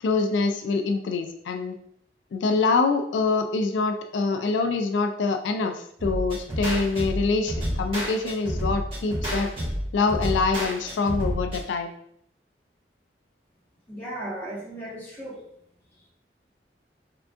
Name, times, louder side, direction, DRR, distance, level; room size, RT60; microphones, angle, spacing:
voice 1, 0.0-1.8 2.3-9.5 9.9-11.9, left 4 dB, 90° left, 6 dB, 0.3 m, -25 dB
sound 1, 6.0-11.6, equal, 30° right, 1.4 m, -29 dB
voice 2, 13.9-15.4, right 1 dB, 10° left, -7 dB, 1.3 m, -36 dB
3.7 x 3.4 x 2.4 m, 0.70 s
head